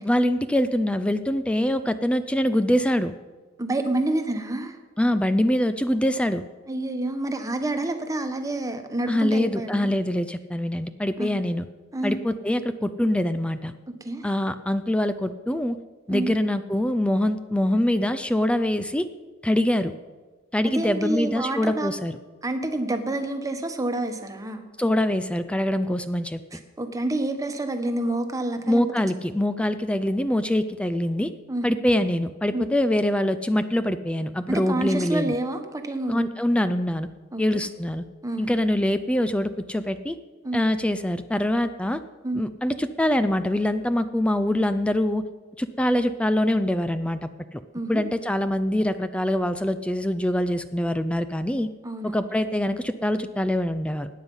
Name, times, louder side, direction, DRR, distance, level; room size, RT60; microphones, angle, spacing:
voice 1, 0.0-3.1 5.0-6.4 9.1-11.7 12.0-13.7 14.2-15.8 16.1-19.1 19.4-19.9 20.5-22.2 24.8-26.4 28.7-31.3 31.6-35.3 36.1-37.1 37.4-38.0 38.4-40.2 40.5-42.0 42.3-45.2 45.6-47.6 47.9-51.7 52.0-54.1, left 1 dB, 5° left, 11 dB, 0.4 m, -24 dB
voice 2, 3.6-4.8 6.7-9.9 11.2-11.3 11.9-12.1 14.0-14.3 16.1-16.3 20.6-21.9 22.4-24.6 26.5-28.8 31.5-31.8 32.5-32.7 34.5-36.3 37.3-37.4 38.2-38.5 40.4-40.6 42.2-42.4 47.7-48.1 51.8-52.3, right 1 dB, 15° right, 6 dB, 1.2 m, -28 dB
16.5 x 9.7 x 5.5 m, 1.3 s
head